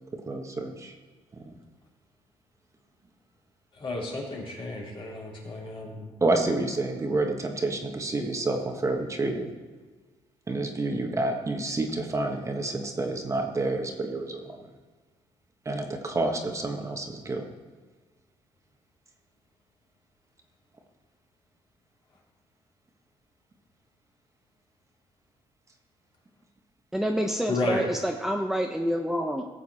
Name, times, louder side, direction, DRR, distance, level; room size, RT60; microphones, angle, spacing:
voice 1, 0.3-0.9 6.2-9.5 10.5-14.6 15.6-17.4, right 2 dB, 25° right, 3 dB, 1.5 m, -29 dB
voice 2, 3.8-6.1 27.5-27.9, left 2 dB, 50° left, -3 dB, 3.4 m, -32 dB
voice 3, 26.9-29.5, equal, 5° right, 3 dB, 0.8 m, -27 dB
16.0 x 7.2 x 4.3 m, 1.3 s
cardioid pair, 90°, 12 cm